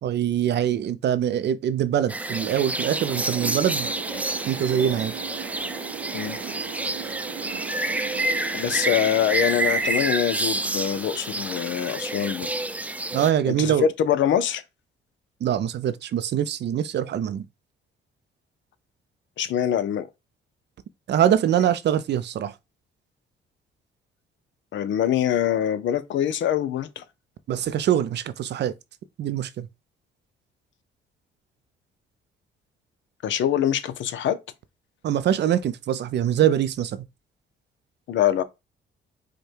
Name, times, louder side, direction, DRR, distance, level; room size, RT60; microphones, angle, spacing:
voice 1, 0.0-3.9 4.5-5.1 13.1-13.9 15.4-17.4 21.1-22.5 27.5-28.7 29.2-29.7 35.0-37.0, right 10 dB, 60° right, 0.5 m, -23 dB
sound 1, 2.1-13.3, right 2 dB, 5° right, 0.4 m, -29 dB
sound 2, 2.9-10.6, right 9 dB, 90° right, 0.8 m, -38 dB
voice 2, 8.5-12.5 13.6-14.6 19.4-20.1 24.7-27.0 33.2-34.4 38.1-38.4, left 9 dB, 70° left, 0.7 m, -24 dB
4.9 x 2.2 x 4.5 m
cardioid pair, 90°, 20 cm